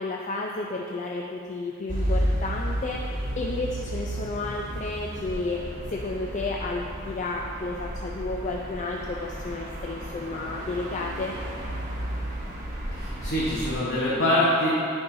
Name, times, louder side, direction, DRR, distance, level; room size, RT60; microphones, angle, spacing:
voice 1, 0.0-5.6 5.9-11.3, left 3 dB, 35° left, -1 dB, 0.3 m, -32 dB
sound 1, 1.9-13.8, equal, 35° right, 1.0 m, -32 dB
voice 2, 12.9-14.7, left 1 dB, 50° left, -7 dB, 0.9 m, -24 dB
9.5 x 5.4 x 2.7 m, 2.5 s
head